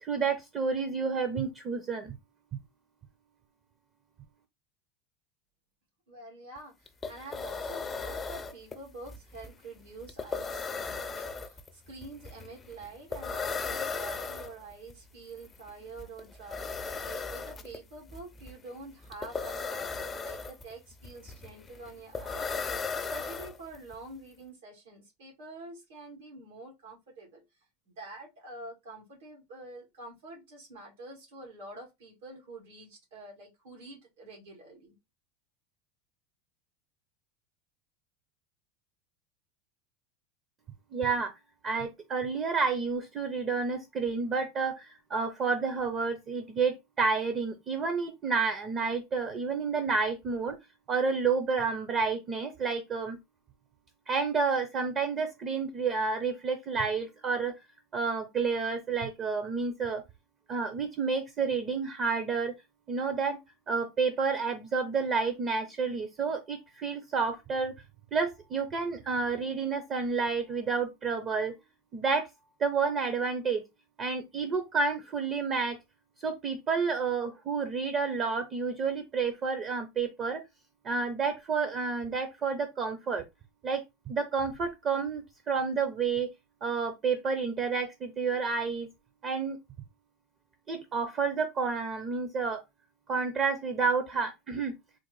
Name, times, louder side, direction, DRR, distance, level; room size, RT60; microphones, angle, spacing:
voice 1, 0.0-2.2 40.9-41.3 41.6-50.6 50.9-53.2 54.1-57.5 57.9-60.0 60.5-62.5 62.9-63.4 63.7-67.7 68.1-71.5 71.9-72.3 72.6-73.6 74.0-75.8 76.2-80.4 80.8-83.2 83.6-86.3 86.6-88.9 89.2-89.6 90.7-92.6 93.1-94.7, right 5 dB, 30° right, 0.5 m, -30 dB
voice 2, 6.1-27.4 27.8-34.9, right 2 dB, 90° right, 1.7 m, -47 dB
sound 1, 6.6-6.7 6.9-23.9, left 4 dB, 15° left, 0.4 m, -37 dB
3.7 x 2.0 x 3.0 m
supercardioid pair, 140°, 0 cm